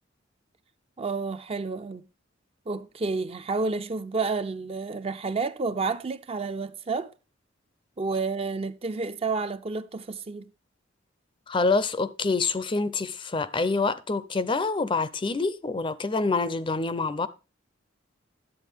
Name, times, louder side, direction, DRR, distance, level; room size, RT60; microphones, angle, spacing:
voice 1, 1.0-2.1 2.7-7.1 8.0-10.5, right 4 dB, 30° right, 0.4 m, -30 dB
voice 2, 11.5-17.3, left 3 dB, 25° left, 0.5 m, -26 dB
11.0 x 8.0 x 3.4 m
head